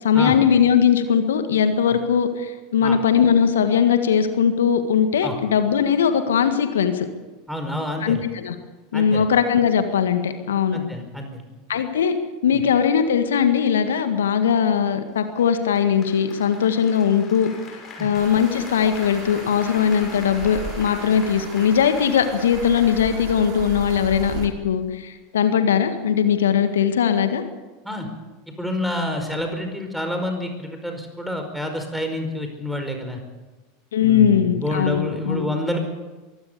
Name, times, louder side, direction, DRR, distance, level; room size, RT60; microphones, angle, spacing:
voice 1, 0.0-7.1 8.0-8.6 8.9-10.8 11.7-12.2 12.4-17.5 18.0-27.4 33.9-35.5, left 8 dB, 70° left, 8 dB, 1.8 m, -20 dB
voice 2, 7.5-8.2 8.9-9.3 10.7-11.4 12.5-12.6 18.0-18.1 27.8-28.1 28.6-33.2 34.0-35.8, left 1 dB, ahead, 4 dB, 5.0 m, -28 dB
Applause, 15.4-24.4, left 4 dB, 35° left, 6.0 m, -42 dB
sound 1, 18.1-24.5, right 6 dB, 45° right, 3.3 m, -36 dB
23.0 x 16.5 x 6.9 m, 1.2 s
figure-of-eight pair, 85°, 0 cm